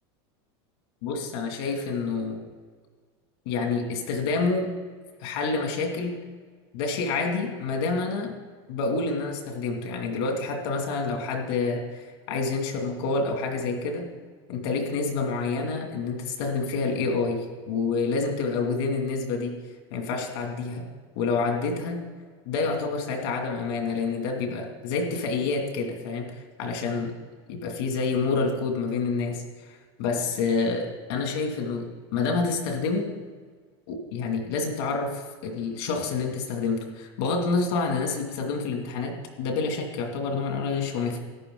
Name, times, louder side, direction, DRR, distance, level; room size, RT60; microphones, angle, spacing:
voice 1, 1.0-2.4 3.5-4.7 5.2-6.2 6.7-8.3 8.7-14.1 14.5-19.6 19.9-20.9 21.1-22.0 22.5-27.1 27.5-33.1 33.9-41.2, left 4 dB, 65° left, 3 dB, 2.5 m, -28 dB
13.5 x 10.5 x 3.9 m, 1.6 s
supercardioid pair, 145°, 14 cm